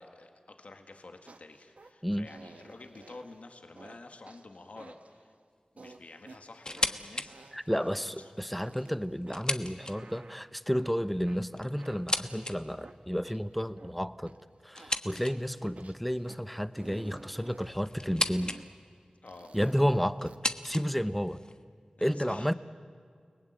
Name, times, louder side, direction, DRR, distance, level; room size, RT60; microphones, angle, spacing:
voice 1, 0.0-5.4 5.7-8.3 15.5-15.7 19.2-19.6 22.0-22.5, left 2 dB, 75° left, 5 dB, 1.9 m, -50 dB
sound 1, 1.3-1.9 2.3-3.4 3.8-4.0 4.3-5.2 5.8-6.4 6.8-9.0 9.3-10.9 11.3-13.9 14.3-14.4 14.8-16.4 16.8-17.7 18.3-18.7 19.3-20.4, right 3 dB, 75° right, 1.3 m, -53 dB
sound 2, 6.6-7.3 7.7-7.8 8.5-10.2 11.2-12.6 14.7-15.6 16.8-18.6 18.9-19.4 20.2-21.6, left 2 dB, 35° left, 1.3 m, -35 dB
voice 2, 7.5-14.4 14.6-18.6 19.5-20.3 20.6-21.4 22.0-22.5, equal, 5° left, 14 dB, 0.9 m, -31 dB
30.0 x 19.5 x 9.0 m, 2.2 s
wide cardioid pair, 55°, 2 cm